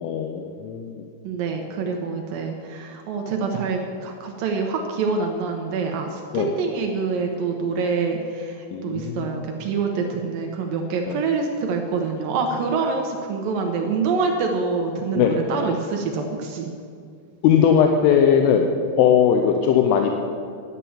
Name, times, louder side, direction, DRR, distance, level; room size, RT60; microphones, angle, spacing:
voice 1, 0.0-1.1 6.3-6.5 8.7-9.4 11.1-11.2 15.2-15.4 17.4-18.7 19.0-20.1, left 8 dB, 85° left, 4 dB, 3.2 m, -19 dB
voice 2, 1.2-16.7, right 4 dB, 85° right, 2 dB, 2.0 m, -26 dB
11.5 x 9.9 x 7.2 m, 2.3 s
omnidirectional pair, 5.4 m